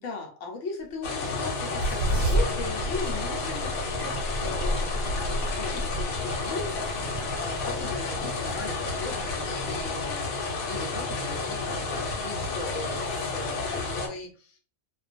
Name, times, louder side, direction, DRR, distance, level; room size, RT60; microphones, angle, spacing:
voice 1, 0.0-14.6, left 3 dB, 65° left, 1 dB, 0.9 m, -38 dB
sound 1, 1.0-14.1, left 3 dB, 80° left, 1.1 m, -31 dB
sound 2, 1.3-10.1, right 1 dB, 90° right, 1.1 m, -32 dB
2.4 x 2.3 x 2.4 m, 0.41 s
omnidirectional pair, 1.5 m